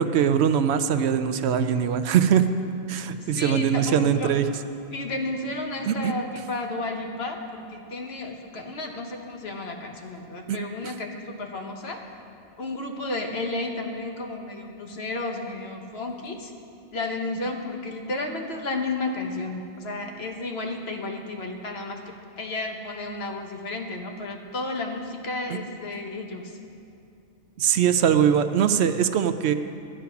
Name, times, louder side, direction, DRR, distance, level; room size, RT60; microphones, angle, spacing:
voice 1, 0.0-2.4 2.9-4.4 5.9-6.1 10.5-10.6 27.6-29.5, right 8 dB, 70° right, 10 dB, 0.8 m, -21 dB
voice 2, 3.2-4.3 4.9-12.0 12.6-16.5 16.9-22.0 22.4-26.6, left 2 dB, 60° left, 2 dB, 1.4 m, -32 dB
12.5 x 10.0 x 5.8 m, 2.4 s
omnidirectional pair, 1.2 m